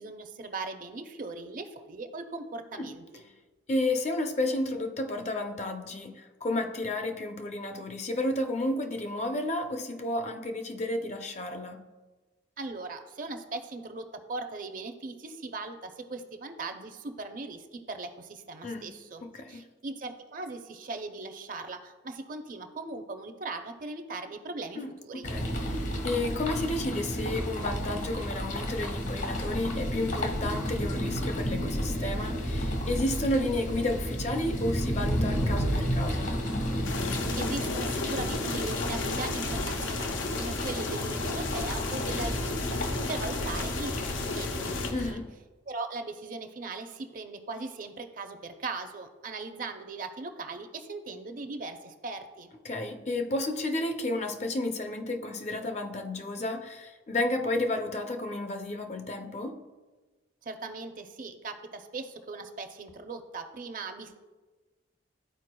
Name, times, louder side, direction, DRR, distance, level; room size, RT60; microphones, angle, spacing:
voice 1, 0.0-3.2 12.6-25.3 37.4-45.2 45.7-52.5 60.4-64.1, right 3 dB, 45° right, 0.6 m, -39 dB
voice 2, 3.7-11.8 18.6-18.9 19.2-19.7 24.8-36.3 44.9-45.3 52.6-59.6, left 1 dB, 35° left, 0.5 m, -32 dB
sound 1, 25.2-45.1, equal, 70° left, 1.5 m, -32 dB
sound 2, 36.8-44.9, left 4 dB, 90° left, 0.6 m, -34 dB
13.0 x 4.5 x 2.2 m
head